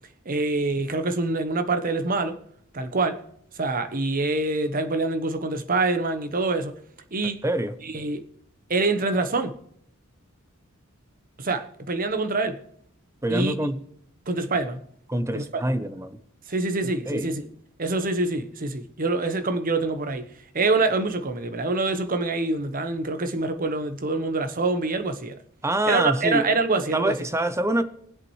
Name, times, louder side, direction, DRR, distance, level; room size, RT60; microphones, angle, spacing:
voice 1, 0.2-2.4 2.7-3.2 3.5-6.7 7.1-7.4 7.8-8.2 8.7-9.6 11.4-12.6 13.3-13.5 14.3-14.8 15.3-15.6 16.5-17.4 17.8-20.3 20.5-25.4 25.9-27.2, right 3 dB, 40° right, 1.0 m, -25 dB
voice 2, 13.2-13.8 15.1-16.2 17.1-17.3 25.6-26.4 26.9-27.8, right 1 dB, 15° right, 0.8 m, -25 dB
24.0 x 8.3 x 3.2 m
head